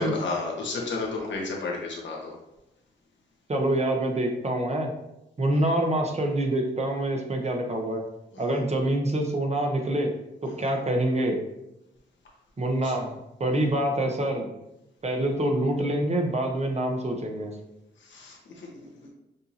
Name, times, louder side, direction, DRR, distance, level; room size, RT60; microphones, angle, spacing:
voice 1, 0.0-2.3 5.5-5.7 8.3-8.6 10.4-10.7 12.7-12.9 13.5-13.7 18.0-18.7, left 3 dB, 80° left, -1 dB, 1.2 m, -33 dB
voice 2, 3.5-4.9 5.4-8.0 8.4-10.1 10.4-11.4 12.6-14.5 15.0-17.5, right 1 dB, 35° right, 2 dB, 1.0 m, -26 dB
6.7 x 2.8 x 2.7 m, 0.91 s
cardioid pair, 65°, 19 cm